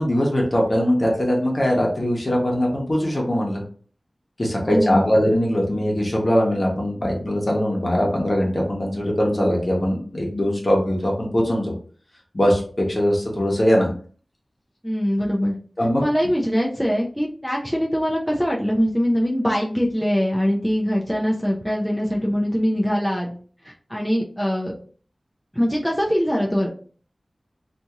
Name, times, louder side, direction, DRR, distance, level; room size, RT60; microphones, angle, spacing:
voice 1, 0.0-3.6 4.4-11.7 12.3-13.9 15.8-16.1, equal, 45° left, -2 dB, 1.0 m, -21 dB
voice 2, 4.6-5.1 14.8-15.6 16.0-23.3 23.6-24.7 25.5-26.7, equal, 5° left, -3 dB, 0.5 m, -22 dB
2.8 x 2.6 x 2.4 m, 0.44 s
wide cardioid pair, 60°, 0 cm